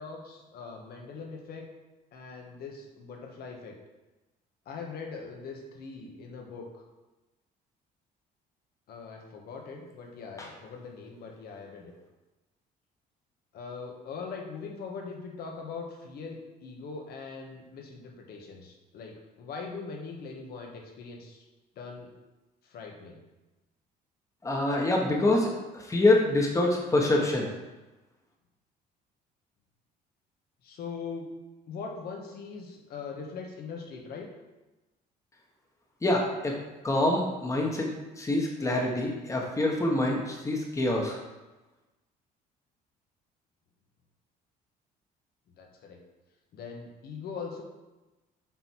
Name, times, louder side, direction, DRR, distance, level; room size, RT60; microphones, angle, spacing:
voice 1, 0.0-1.7 2.1-3.7 4.6-6.7 8.9-11.9 13.5-21.5 21.7-22.1 22.6-23.2 30.6-31.3 31.7-34.3 45.6-46.0 46.5-47.6, left 5 dB, 65° left, 1 dB, 1.5 m, -41 dB
voice 2, 24.4-27.5 36.0-36.5 36.8-41.2, left 2 dB, 20° left, 0 dB, 1.3 m, -26 dB
7.7 x 4.4 x 4.6 m, 1.1 s
cardioid pair, 110°, 17 cm